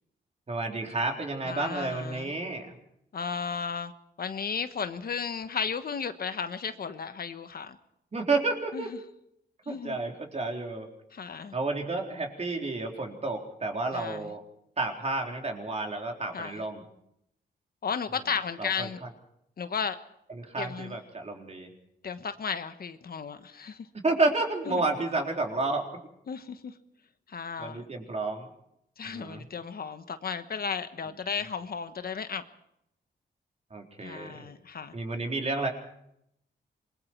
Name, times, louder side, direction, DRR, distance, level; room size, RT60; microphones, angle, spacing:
voice 1, 0.5-2.8 8.1-8.9 9.7-10.9 11.5-14.4 14.8-16.8 18.6-18.9 20.3-21.7 24.0-25.9 27.6-28.5 29.0-29.4 33.7-34.5 34.9-35.7, right 3 dB, 35° right, 2 dB, 3.9 m, -31 dB
voice 2, 1.4-2.3 3.1-3.9 4.2-7.8 8.7-8.8 9.6-10.0 11.1-11.5 13.9-14.3 16.3-16.6 17.8-19.0 19.6-20.0 20.6-21.0 22.0-23.9 24.7-24.9 26.3-26.7 27.3-27.8 29.0-32.4 34.0-34.9, left 6 dB, 55° left, 10 dB, 1.3 m, -34 dB
27.0 x 21.5 x 4.6 m, 0.77 s
wide cardioid pair, 110°, 18 cm